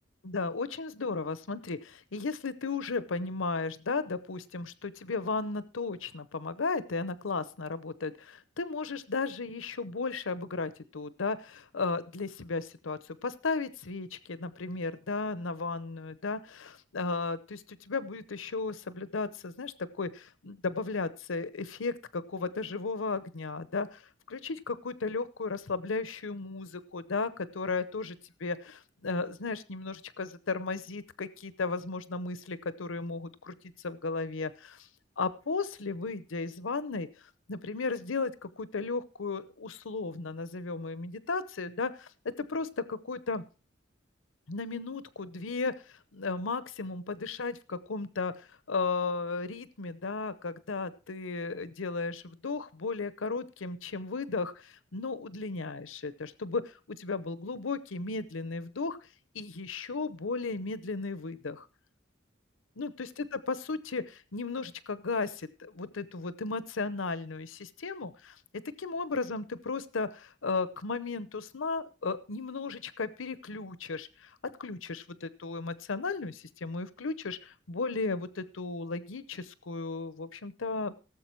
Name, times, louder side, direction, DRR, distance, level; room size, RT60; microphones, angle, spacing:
voice 1, 0.2-24.0 24.3-34.9 35.2-37.1 37.5-42.1 42.4-43.4 44.5-59.0 59.3-61.7 62.8-68.4 68.8-74.3 74.6-80.9, left 4 dB, 90° left, 15 dB, 0.8 m, -35 dB
17.5 x 7.5 x 4.6 m, 0.33 s
head